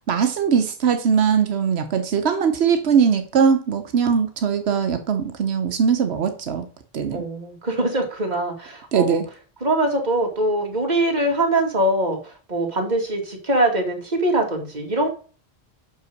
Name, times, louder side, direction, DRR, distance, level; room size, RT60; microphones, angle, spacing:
voice 1, 0.1-6.6 6.9-7.2 8.9-9.2, right 6 dB, 90° right, 7 dB, 1.1 m, -20 dB
voice 2, 7.1-9.2 9.6-15.1, right 1 dB, 45° right, 2 dB, 2.0 m, -23 dB
6.0 x 5.6 x 6.3 m, 0.39 s
omnidirectional pair, 1.1 m